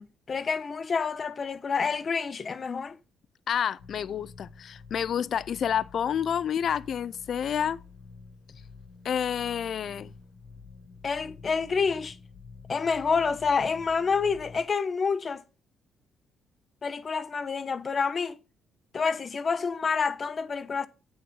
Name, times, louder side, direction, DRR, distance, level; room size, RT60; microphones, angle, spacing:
voice 1, 0.0-3.0 11.0-12.2 12.7-15.4 16.8-18.4 18.9-20.9, left 5 dB, 40° left, 1.0 m, -28 dB
voice 2, 3.5-7.8 9.0-10.1, left 8 dB, 60° left, 0.5 m, -29 dB
sound 1, 3.8-14.6, left 4 dB, 85° left, 1.7 m, -49 dB
8.7 x 7.1 x 5.4 m
cardioid pair, 90°, 0 cm